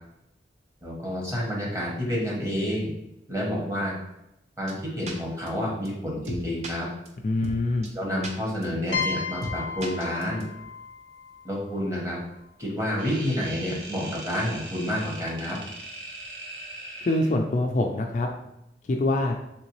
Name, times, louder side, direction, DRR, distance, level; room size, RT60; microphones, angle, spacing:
voice 1, 0.8-2.9 3.3-3.9 4.6-6.9 7.9-10.4 11.4-12.2 12.6-15.6, equal, 15° right, -3 dB, 0.9 m, -29 dB
sound 1, 4.7-4.8 5.1-5.2 5.5-5.6 5.8-5.9 6.2-6.7 7.1-7.2 7.4-7.6 7.8-7.9 8.2-8.3 8.6-8.7 9.0-9.1 9.4-9.6 9.8-10.4, right 1 dB, 40° right, 0.5 m, -34 dB
voice 2, 7.2-7.9 17.0-18.3 18.8-19.3, left 2 dB, 40° left, 2 dB, 0.3 m, -24 dB
sound 2, 8.9-12.6, left 5 dB, 85° left, 0.6 m, -34 dB
sound 3, 13.0-17.4, right 2 dB, 80° right, 0.7 m, -40 dB
3.7 x 3.2 x 3.1 m, 0.85 s
head